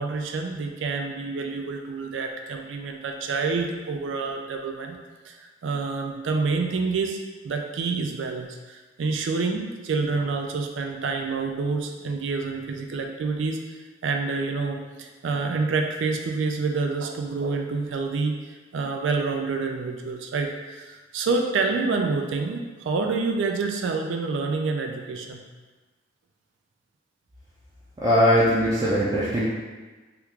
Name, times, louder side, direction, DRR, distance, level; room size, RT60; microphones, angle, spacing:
voice 1, 0.0-5.0 5.3-7.2 7.4-13.6 14.0-18.4 18.7-25.4 28.8-29.0, right 4 dB, 85° right, 3 dB, 0.4 m, -27 dB
voice 2, 28.0-29.5, equal, 20° right, -8 dB, 0.4 m, -20 dB
2.9 x 2.3 x 3.5 m, 1.3 s
head